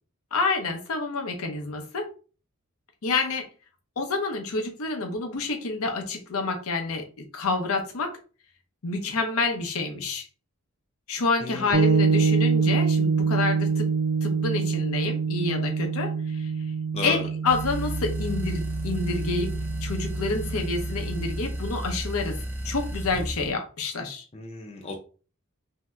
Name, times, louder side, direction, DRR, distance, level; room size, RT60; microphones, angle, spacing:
voice 1, 0.3-2.1 3.0-3.5 4.0-7.1 7.3-8.2 8.8-10.3 11.1-13.9 14.2-16.5 17.0-19.5 19.8-22.4 22.6-24.2, left 3 dB, 75° left, 5 dB, 0.6 m, -28 dB
voice 2, 11.4-11.9 16.9-17.2 24.3-24.9, left 3 dB, 30° left, 3 dB, 0.4 m, -34 dB
sound 1, 11.7-21.4, right 5 dB, 55° right, 0.4 m, -26 dB
sound 2, 17.5-23.5, equal, 10° right, 0.7 m, -32 dB
2.7 x 2.1 x 3.4 m, 0.36 s
head